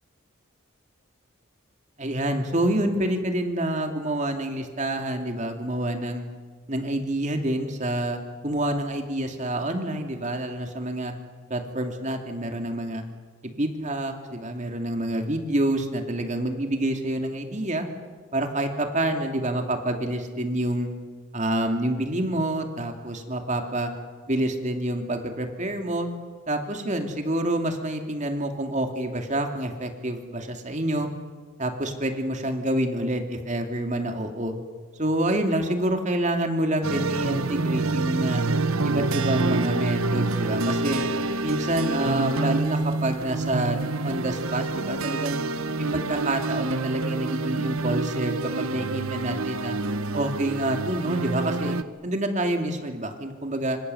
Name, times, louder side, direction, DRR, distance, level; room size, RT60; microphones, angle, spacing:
voice 1, 2.0-6.3 6.7-11.1 11.5-13.0 13.6-17.9 18.3-20.9 21.3-23.9 24.3-26.1 26.5-31.1 31.6-34.5 35.0-38.4 38.8-41.0 41.4-45.4 45.8-49.8 50.1-51.8 52.0-53.8, right 1 dB, 35° right, 4 dB, 2.8 m, -27 dB
sound 1, 36.8-51.8, right 3 dB, 90° right, 1.2 m, -27 dB
27.0 x 26.5 x 8.0 m, 1.5 s
head